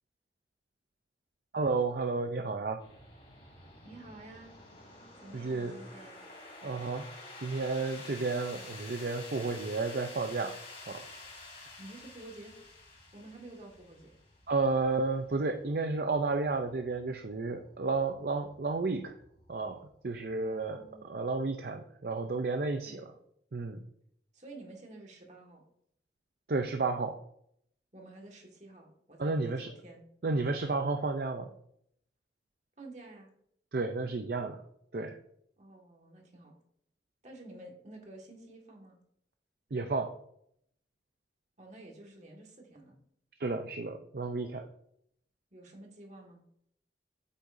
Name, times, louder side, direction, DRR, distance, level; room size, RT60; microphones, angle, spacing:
voice 1, 1.5-2.8 5.3-5.8 6.6-7.1 7.4-10.6 10.9-11.0 14.5-19.1 19.5-23.0 23.5-23.8 26.5-27.2 29.2-29.7 30.2-31.5 33.7-34.6 34.9-35.2 39.7-40.1 43.4-44.7, right 3 dB, 55° right, 6 dB, 0.5 m, -32 dB
sound 1, 2.8-21.4, left 2 dB, 35° left, 3.1 m, -51 dB
voice 2, 3.8-4.5 5.2-6.2 11.8-12.5 13.1-14.2 20.4-21.2 22.8-23.1 24.3-25.6 27.9-30.1 32.8-33.3 35.6-36.5 37.2-39.0 41.6-43.0 45.5-46.4, right 2 dB, 40° right, 1 dB, 1.8 m, -50 dB
8.5 x 7.9 x 2.6 m, 0.70 s
head